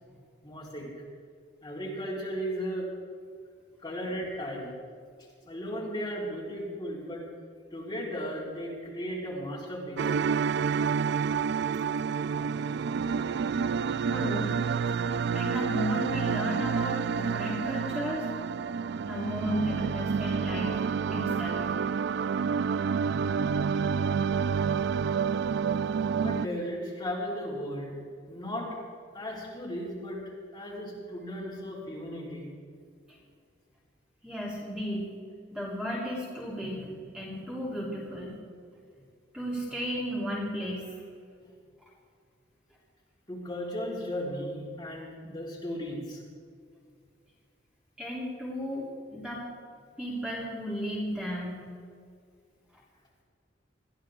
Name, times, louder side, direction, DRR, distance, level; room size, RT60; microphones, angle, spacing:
voice 1, 0.4-0.9 1.6-2.9 3.8-4.8 5.5-7.3 7.7-10.0 26.2-28.0 28.3-28.7 29.1-30.2 30.5-32.5 41.4-41.5 43.3-46.2, equal, 25° left, -6 dB, 4.6 m, -35 dB
sound 1, 10.0-26.5, right 6 dB, 60° right, 0.3 m, -29 dB
voice 2, 14.0-14.6 15.0-18.2 19.1-20.8 21.1-21.7 34.2-35.1 35.5-38.4 39.3-40.9 48.0-49.5 50.0-51.7, equal, 5° right, -6 dB, 3.7 m, -34 dB
23.0 x 15.0 x 3.8 m, 2.2 s
head